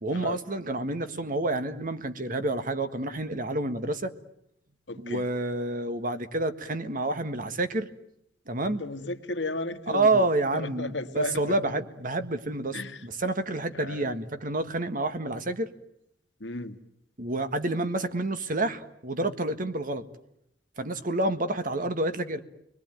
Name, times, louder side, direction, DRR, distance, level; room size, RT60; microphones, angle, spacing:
voice 1, 0.0-4.1 5.0-7.9 8.5-8.8 9.9-15.7 17.2-20.0 20.8-22.4, right 2 dB, 50° right, 10 dB, 1.6 m, -29 dB
voice 2, 4.9-5.3 8.8-10.2 10.5-11.6 12.7-13.0 13.7-14.1 16.4-16.8, left 2 dB, 80° left, 8 dB, 1.8 m, -34 dB
29.5 x 22.0 x 9.1 m, 0.77 s
head